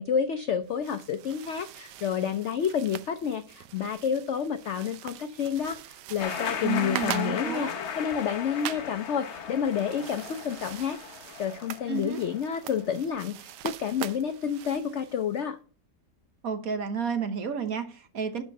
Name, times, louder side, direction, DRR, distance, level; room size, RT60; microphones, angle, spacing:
voice 1, 0.0-11.0 11.4-15.6, left 7 dB, 75° left, 0.6 m, -29 dB
sound 1, 0.6-15.4, right 12 dB, 80° right, 1.2 m, -43 dB
sound 2, 6.2-12.8, left 7 dB, 50° left, 0.9 m, -36 dB
voice 2, 6.6-7.7 11.9-12.2 16.4-18.4, right 6 dB, 60° right, 1.3 m, -31 dB
11.5 x 4.4 x 5.3 m
omnidirectional pair, 1.9 m